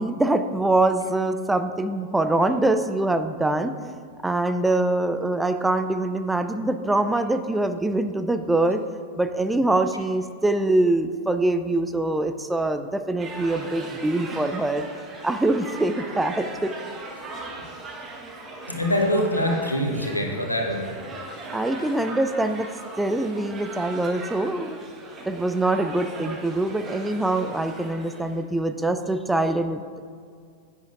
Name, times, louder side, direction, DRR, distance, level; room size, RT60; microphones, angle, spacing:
voice 1, 0.0-3.7 4.2-8.8 9.2-14.8 15.2-16.7 21.5-22.7 23.0-24.8 25.2-30.0, right 2 dB, 5° right, 9 dB, 0.4 m, -24 dB
sound 1, 13.2-28.4, right 2 dB, 25° right, 1.2 m, -39 dB
voice 2, 18.7-20.9, left 1 dB, 90° left, 1 dB, 1.1 m, -24 dB
10.0 x 8.1 x 2.5 m, 2.2 s
figure-of-eight pair, 90°, 0 cm